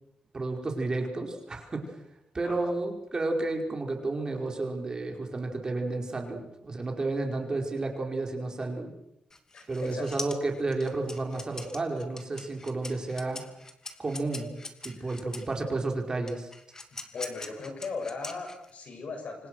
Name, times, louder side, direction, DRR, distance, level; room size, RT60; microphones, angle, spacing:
voice 1, 0.3-2.0 2.3-8.9 9.7-13.4 14.0-16.5, right 2 dB, 30° right, 2 dB, 5.1 m, -32 dB
voice 2, 2.4-2.8 9.5-10.3 15.0-15.3 17.1-19.5, left 4 dB, 60° left, 4 dB, 7.6 m, -38 dB
sound 1, 9.3-15.5 16.3-18.9, left 2 dB, 20° left, 2.7 m, -42 dB
28.0 x 26.0 x 6.4 m, 0.83 s
wide cardioid pair, 150°, 3 cm